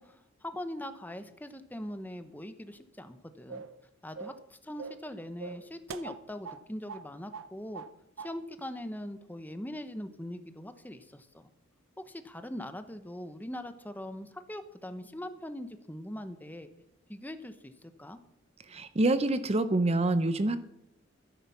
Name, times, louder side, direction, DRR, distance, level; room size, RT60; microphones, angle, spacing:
voice 1, 0.0-3.6 4.0-7.8 8.2-11.5 12.0-16.7 17.1-18.2, left 1 dB, 10° left, 10 dB, 1.0 m, -41 dB
sound 1, 3.5-3.8 4.1-4.5 4.8-5.1 5.4-6.6 6.9-7.1 7.3-8.3, right 5 dB, 75° right, 0.7 m, -42 dB
voice 2, 18.7-20.6, right 2 dB, 30° right, 13 dB, 0.6 m, -26 dB
13.0 x 10.5 x 5.8 m, 0.83 s
head